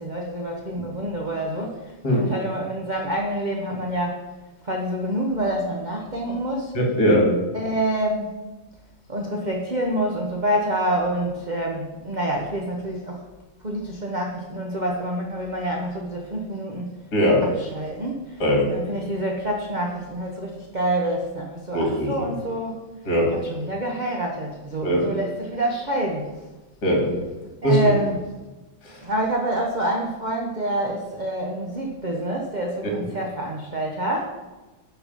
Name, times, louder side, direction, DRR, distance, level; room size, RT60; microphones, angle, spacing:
voice 1, 0.0-1.8 2.2-4.2 4.6-6.8 7.5-8.4 9.1-13.2 13.6-16.9 17.6-18.4 18.7-22.8 23.3-26.3 27.6-28.2 29.0-34.3, right 1 dB, 35° right, -1 dB, 0.7 m, -27 dB
voice 2, 6.7-7.3 17.1-17.4 18.4-18.7 21.7-22.1 23.0-23.3 24.8-25.1 26.8-27.1 27.6-27.8 28.8-29.0 32.8-32.9, equal, 50° left, -1 dB, 2.8 m, -20 dB
10.5 x 4.7 x 5.3 m, 1.1 s
omnidirectional pair, 2.2 m